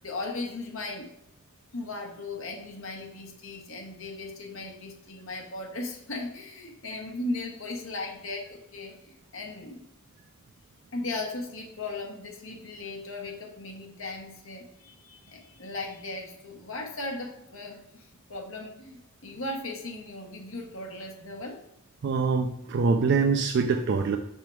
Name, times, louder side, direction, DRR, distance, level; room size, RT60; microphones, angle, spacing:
voice 1, 0.0-1.1 1.7-9.8 10.9-21.6, left 2 dB, 70° left, 1 dB, 1.1 m, -37 dB
voice 2, 22.0-24.2, right 4 dB, 55° right, 5 dB, 0.4 m, -24 dB
5.8 x 3.6 x 4.5 m, 0.86 s
head